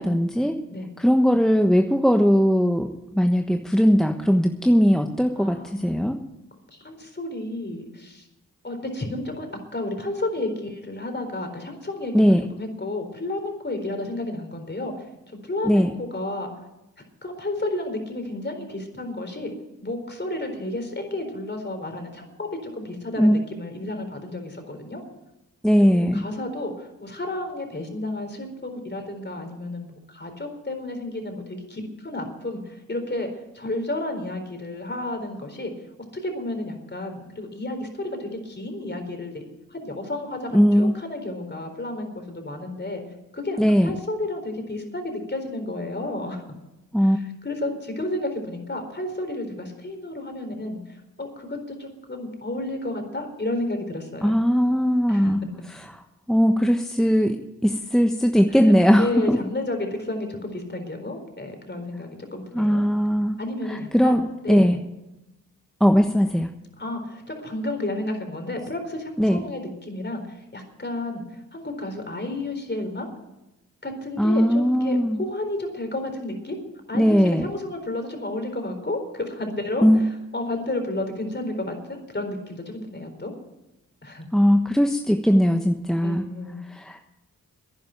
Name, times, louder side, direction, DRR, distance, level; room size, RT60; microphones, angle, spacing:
voice 1, 0.0-0.6 1.0-6.2 12.1-12.5 15.6-15.9 23.2-23.3 25.6-26.2 40.5-40.9 43.6-43.9 46.9-47.2 54.2-55.4 55.7-55.8 56.3-59.4 62.5-63.4 63.7-64.2 64.5-64.8 65.8-66.5 69.2-69.4 74.2-75.2 76.9-77.5 79.8-80.0 84.3-86.2 86.7-87.1, equal, ahead, 4 dB, 1.2 m, -19 dB
voice 2, 5.4-6.2 6.7-8.3 8.6-9.5 9.7-12.1 12.5-16.5 17.2-19.5 19.8-25.0 25.8-33.3 33.5-35.7 36.1-39.4 39.7-43.0 43.3-46.4 47.4-54.4 55.1-55.4 58.5-62.8 63.4-64.8 66.8-73.1 73.8-76.6 76.9-79.9 80.3-83.3 84.0-84.3 86.0-86.7, left 2 dB, 30° left, 5 dB, 4.3 m, -32 dB
11.0 x 10.5 x 9.2 m, 0.94 s
cardioid pair, 45°, 34 cm